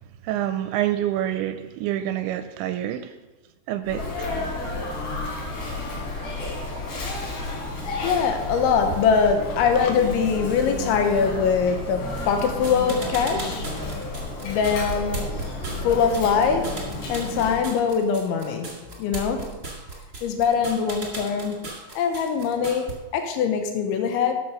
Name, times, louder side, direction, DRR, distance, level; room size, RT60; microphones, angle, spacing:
voice 1, 0.2-3.1 3.7-4.3, right 12 dB, 85° right, 9 dB, 2.7 m, -27 dB
Sneeze, 3.8-17.6, left 2 dB, 60° left, 5.0 m, -32 dB
voice 2, 8.0-13.7 14.2-19.6 20.2-21.6 22.0-24.4, left 6 dB, 80° left, 5 dB, 3.3 m, -23 dB
sound 1, 12.2-22.9, right 2 dB, 25° right, 1.6 m, -36 dB
12.5 x 6.3 x 6.3 m, 1.1 s
omnidirectional pair, 5.5 m